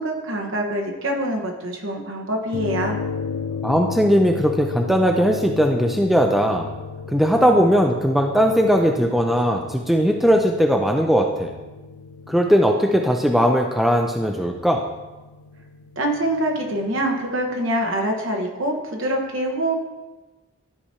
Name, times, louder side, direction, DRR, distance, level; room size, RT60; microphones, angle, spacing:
voice 1, 0.0-3.0 16.0-19.8, right 1 dB, 60° right, 2 dB, 1.1 m, -25 dB
sound 1, 2.5-17.1, left 6 dB, 85° left, 0.4 m, -35 dB
voice 2, 3.6-6.7 7.1-11.5 12.3-14.8, equal, ahead, 2 dB, 0.3 m, -19 dB
13.0 x 4.8 x 2.8 m, 1.2 s
head